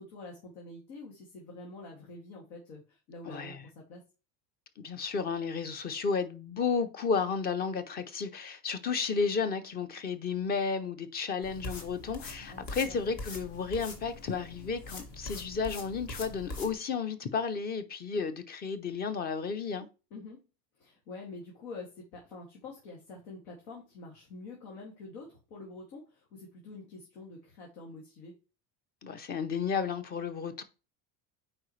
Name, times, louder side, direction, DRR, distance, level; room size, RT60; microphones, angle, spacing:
voice 1, 0.0-4.0 12.5-13.0 20.1-20.4 20.8-28.4, left 3 dB, 85° left, 2.4 m, -47 dB
voice 2, 3.3-3.6 4.8-19.9 29.0-30.6, left 5 dB, 25° left, 0.5 m, -32 dB
sound 1, 11.4-16.7, left 2 dB, 50° left, 2.1 m, -43 dB
8.7 x 4.8 x 3.1 m
cardioid pair, 165°, 43 cm